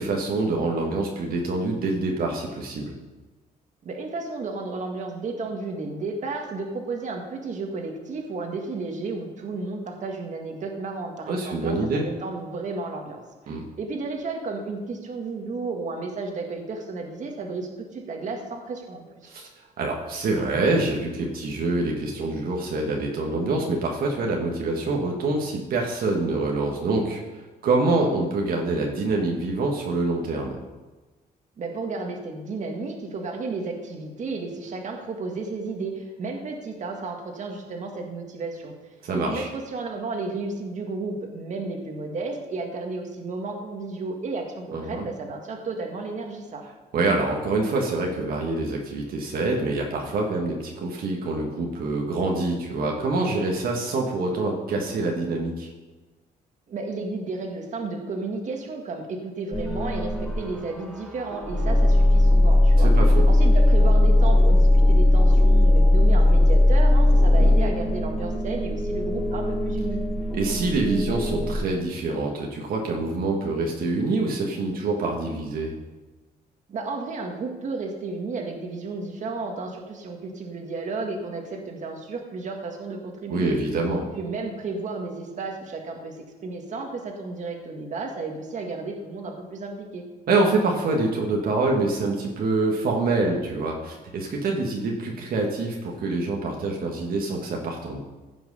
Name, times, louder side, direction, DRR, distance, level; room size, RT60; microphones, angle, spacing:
voice 1, 0.0-2.9 11.3-12.1 13.5-13.6 19.2-19.5 19.8-30.6 39.0-39.5 44.7-45.0 46.9-55.7 62.8-63.2 67.4-67.5 70.3-75.7 83.3-84.0 90.3-98.0, right 2 dB, 70° right, 0 dB, 1.6 m, -26 dB
voice 2, 3.8-19.3 31.6-38.7 39.1-46.6 56.7-62.9 63.3-70.0 76.7-83.6 84.1-86.2 86.4-90.1, right 3 dB, 50° right, 2 dB, 1.8 m, -33 dB
sound 1, 59.5-71.5, left 1 dB, ahead, 1.4 m, -18 dB
15.5 x 6.0 x 5.4 m, 1.2 s
cardioid pair, 130°, 16 cm